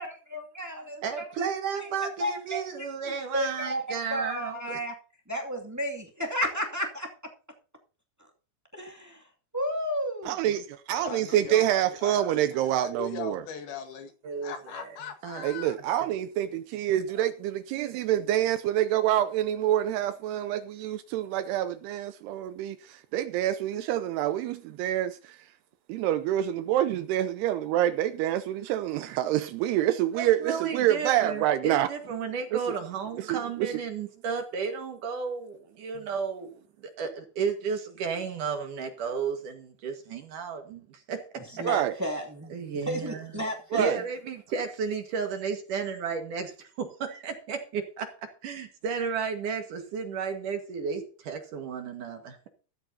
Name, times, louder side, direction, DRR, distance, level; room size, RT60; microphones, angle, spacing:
voice 1, 0.0-1.5 2.2-2.9 3.3-5.0 5.3-7.1 8.2-8.3 8.7-9.3 9.5-10.4 41.4-42.5 42.8-43.9, equal, 10° right, 0.9 m, -32 dB
voice 2, 1.0-4.8 14.2-14.9 15.2-15.6 30.1-41.7 42.5-43.3 43.7-48.1 48.4-52.5, right 6 dB, 55° right, 2.8 m, -33 dB
voice 3, 10.3-13.4 15.4-25.4 25.9-31.9 32.5-32.7 33.2-33.8 41.6-41.9 43.7-44.0, right 12 dB, 80° right, 2.6 m, -27 dB
voice 4, 10.9-12.4 12.8-14.1 14.4-15.8 17.1-17.3, left 7 dB, 70° left, 3.4 m, -39 dB
15.0 x 13.5 x 2.8 m
omnidirectional pair, 4.9 m